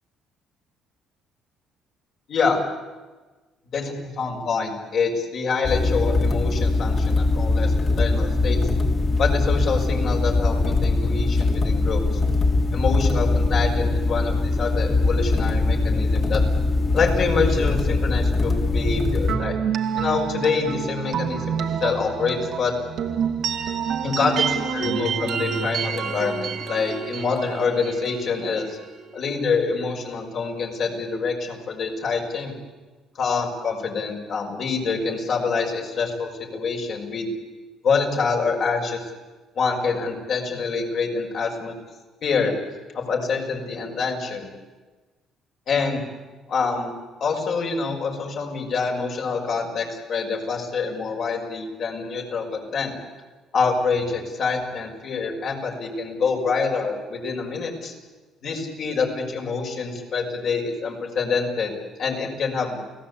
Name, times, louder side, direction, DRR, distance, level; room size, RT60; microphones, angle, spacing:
voice 1, 2.3-2.6 3.7-8.6 9.2-12.2 12.7-16.4 16.9-19.5 19.9-22.7 24.0-28.8 29.1-32.5 33.1-37.3 37.8-39.1 39.6-41.7 42.2-42.5 42.9-44.5 45.7-46.0 46.5-46.9 47.2-53.0 53.5-57.9 58.4-61.7 62.0-62.8, left 4 dB, 55° left, 1 dB, 6.2 m, -26 dB
sound 1, 5.6-19.3, left 2 dB, 40° left, 3.3 m, -21 dB
sound 2, 19.3-29.0, right 7 dB, 65° right, 2.0 m, -28 dB
29.5 x 18.5 x 8.6 m, 1.3 s
cardioid pair, 100°, 0 cm